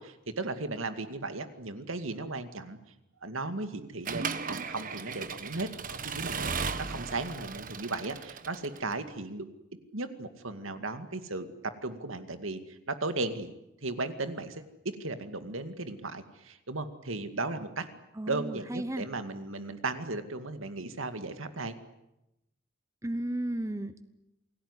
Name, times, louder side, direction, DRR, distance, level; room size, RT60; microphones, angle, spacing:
voice 1, 0.0-2.8 3.2-9.5 9.9-13.5 13.8-14.7 15.0-17.9 18.3-21.8, right 2 dB, 85° right, 9 dB, 2.3 m, -36 dB
Accelerating revving vroom / Mechanisms, 4.1-9.0, right 5 dB, 40° right, 1.2 m, -36 dB
voice 2, 18.1-19.1 23.0-24.0, right 1 dB, 15° right, 12 dB, 1.0 m, -34 dB
28.5 x 18.5 x 9.9 m, 0.90 s
head